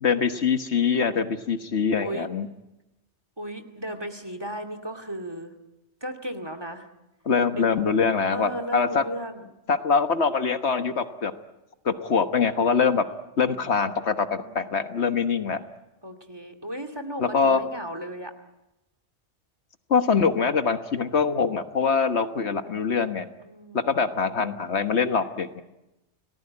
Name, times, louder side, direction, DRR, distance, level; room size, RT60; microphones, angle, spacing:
voice 1, 0.0-2.5 7.2-9.0 9.7-11.3 11.8-13.1 13.4-15.6 17.2-17.6 19.9-23.3 23.7-25.6, left 5 dB, 70° left, 8 dB, 1.5 m, -23 dB
voice 2, 3.4-5.5 6.0-6.9 7.5-7.7 8.3-9.5 13.5-14.8 16.0-18.3 23.4-23.9, right 1 dB, 20° right, 9 dB, 2.4 m, -36 dB
29.5 x 19.0 x 9.7 m, 0.96 s
omnidirectional pair, 1.2 m